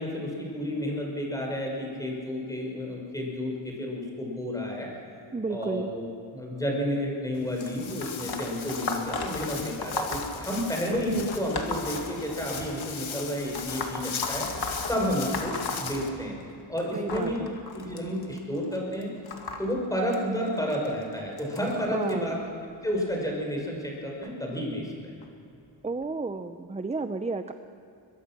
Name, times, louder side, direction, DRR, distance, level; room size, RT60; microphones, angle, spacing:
voice 1, 0.0-4.9 5.5-6.0 6.3-14.5 14.9-16.4 16.7-17.4 17.7-19.1 19.6-22.4 22.8-24.9 25.1-25.2, equal, 5° left, -1 dB, 5.4 m, -31 dB
voice 2, 5.3-5.9 16.9-17.6 21.9-22.4 25.8-27.5, right 3 dB, 15° right, 8 dB, 0.6 m, -32 dB
Walk footsteps, 7.3-16.1, left 6 dB, 90° left, 1.9 m, -38 dB
sound 1, 7.6-12.7 13.5-16.5 16.8-22.1 22.9-23.2 24.2-24.3 25.2-25.3 26.0-26.1, left 3 dB, 55° left, 2.3 m, -36 dB
22.5 x 21.5 x 6.1 m, 2.7 s
wide cardioid pair, 135°, 46 cm